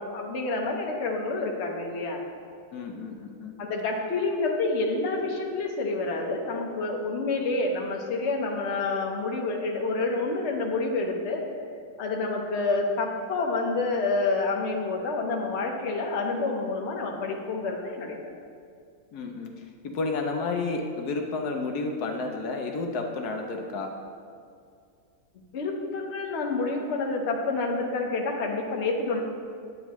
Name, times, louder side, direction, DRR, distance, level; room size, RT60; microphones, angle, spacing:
voice 1, 0.0-2.2 3.6-11.5 12.0-18.2 25.5-29.2, left 3 dB, 50° left, 1 dB, 1.1 m, -28 dB
voice 2, 2.7-3.5 19.1-19.5 19.8-23.9, left 3 dB, 75° left, 3 dB, 1.2 m, -31 dB
9.4 x 9.2 x 3.0 m, 2.3 s
omnidirectional pair, 1.7 m